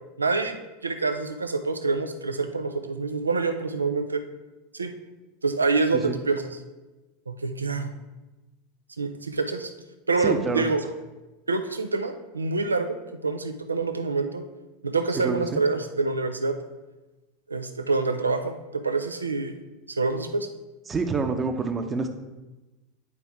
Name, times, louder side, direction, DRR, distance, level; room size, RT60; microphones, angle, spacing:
voice 1, 0.2-4.2 4.7-4.9 5.4-6.6 7.3-7.9 9.0-9.7 10.1-10.9 11.5-14.4 14.8-16.6 17.5-19.6 20.0-20.5, right 3 dB, 85° right, 8 dB, 0.5 m, -26 dB
voice 2, 10.2-10.7 15.2-15.6 20.9-22.1, right 4 dB, 20° right, 6 dB, 0.8 m, -27 dB
9.5 x 4.6 x 3.5 m, 1.1 s
figure-of-eight pair, 85°, 0 cm